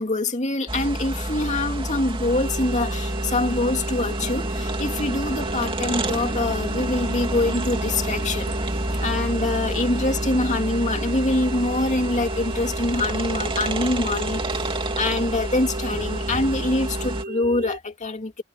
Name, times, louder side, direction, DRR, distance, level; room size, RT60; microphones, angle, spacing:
voice 1, 0.0-8.5 9.0-14.6 15.0-18.4, left 2 dB, 35° left, 2.4 m, -25 dB
sound 1, 0.7-17.2, right 1 dB, 25° right, 2.8 m, -28 dB
sound 2, 2.3-17.8, right 2 dB, 55° right, 4.4 m, -35 dB
head